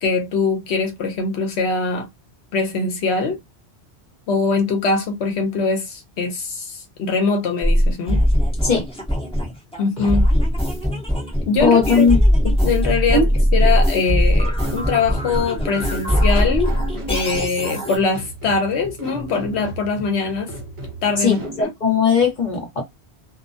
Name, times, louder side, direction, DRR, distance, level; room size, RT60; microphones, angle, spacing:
voice 1, 0.0-2.1 2.5-3.4 4.3-8.2 9.8-10.2 11.5-12.1 12.4-16.8 17.1-20.5 21.0-21.7, left 4 dB, 75° left, 0.9 m, -22 dB
sound 1, 7.6-18.0, equal, 5° left, 0.7 m, -20 dB
voice 2, 11.6-12.2 13.1-13.3 21.2-22.8, left 5 dB, 45° left, 0.9 m, -18 dB
sound 2, 14.6-21.6, right 1 dB, 35° right, 0.7 m, -35 dB
2.3 x 2.1 x 2.5 m
omnidirectional pair, 1.1 m